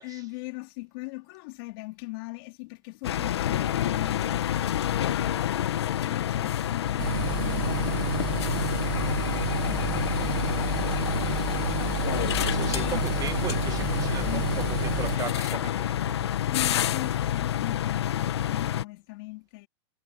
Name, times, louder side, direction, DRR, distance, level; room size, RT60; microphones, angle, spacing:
voice 1, 0.0-5.6 6.0-9.2 12.7-13.0 14.2-14.9 16.5-19.7, left 25 dB, 60° left, 3.7 m, -40 dB
sound 1, 3.0-18.8, left 11 dB, 90° left, 1.8 m, -28 dB
sound 2, 7.0-15.2, right 19 dB, 60° right, 2.0 m, -31 dB
voice 2, 12.4-16.3, right 9 dB, 25° right, 1.6 m, -37 dB
hypercardioid pair, 125°, 14 cm